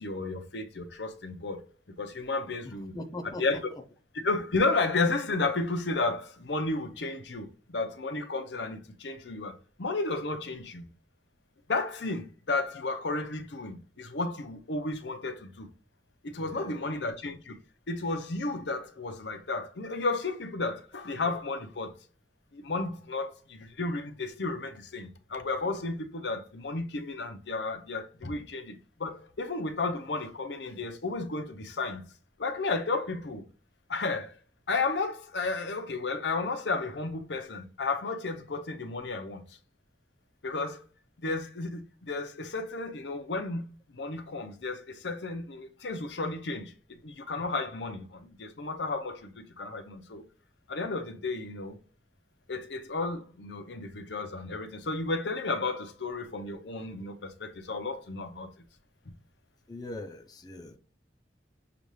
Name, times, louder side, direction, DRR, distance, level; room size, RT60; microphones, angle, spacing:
voice 1, 0.0-1.6 2.0-2.9 3.4-3.6 4.1-10.9 11.7-15.7 16.2-17.6 17.9-21.9 22.5-32.0 32.4-33.4 33.9-34.4 34.7-39.4 40.4-40.8 41.2-43.6 43.9-46.7 47.0-50.2 50.7-51.8 52.5-58.5, left 3 dB, 80° left, 0.7 m, -33 dB
voice 2, 2.6-3.8 16.4-17.1 59.7-60.8, left 1 dB, 25° left, 0.5 m, -42 dB
6.8 x 2.5 x 3.1 m
head